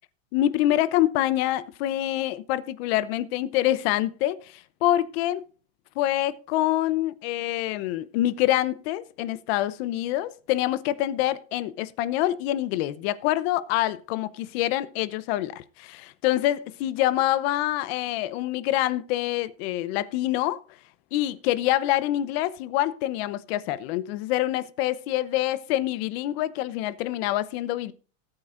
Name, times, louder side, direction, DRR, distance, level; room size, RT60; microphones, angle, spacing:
voice 1, 0.3-5.4 6.0-20.6 21.1-27.9, left 14 dB, 50° left, 0.9 m, -26 dB
18.5 x 8.9 x 2.6 m
supercardioid pair, 150°, 40 cm